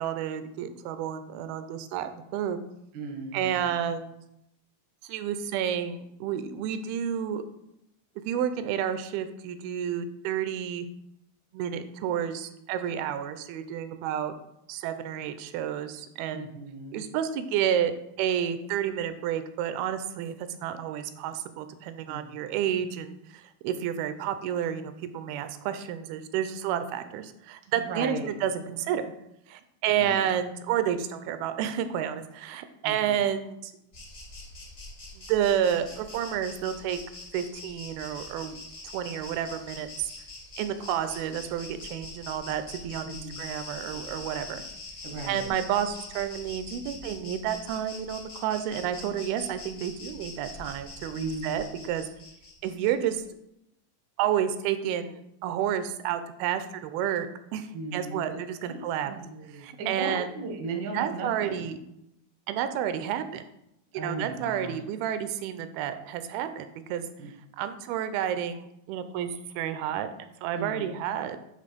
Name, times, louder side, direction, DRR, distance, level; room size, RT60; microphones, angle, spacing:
voice 1, 0.0-2.6 3.3-4.2 5.0-7.4 8.3-10.9 11.5-14.3 14.7-16.5 16.9-17.9 18.2-29.1 29.5-33.7 35.2-37.0 37.3-38.6 38.9-40.1 40.6-44.6 45.3-52.0 52.6-53.2 54.2-57.3 57.5-59.1 59.6-60.3 60.9-61.8 62.5-63.4 63.9-67.1 67.6-71.4, right 9 dB, 90° right, 10 dB, 2.5 m, -30 dB
voice 2, 2.9-3.7 16.3-17.1 22.1-22.7 27.7-28.5 29.9-30.3 32.8-33.2 43.0-43.4 45.0-45.6 51.1-51.6 57.7-58.4 58.6-61.7 63.9-64.8 67.2-67.3 70.5-70.9, right 3 dB, 70° right, 2 dB, 1.1 m, -37 dB
Insect, 33.9-53.1, left 3 dB, 30° left, 1.0 m, -44 dB
9.5 x 3.6 x 5.1 m, 0.81 s
omnidirectional pair, 4.2 m